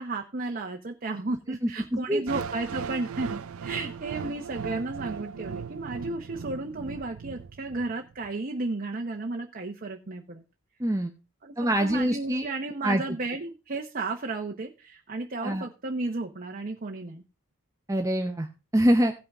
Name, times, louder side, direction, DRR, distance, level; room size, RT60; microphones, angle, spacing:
voice 1, 0.0-10.4 11.4-17.2, right 3 dB, 40° right, 3 dB, 0.9 m, -33 dB
voice 2, 1.6-2.2 10.8-11.1 11.6-12.5 12.8-13.0 15.4-15.7 17.9-18.5 18.7-19.1, equal, 15° right, 4 dB, 0.7 m, -24 dB
sound 1, 2.3-8.3, right 6 dB, 70° right, 0.4 m, -37 dB
16.5 x 5.7 x 3.6 m, 0.30 s
head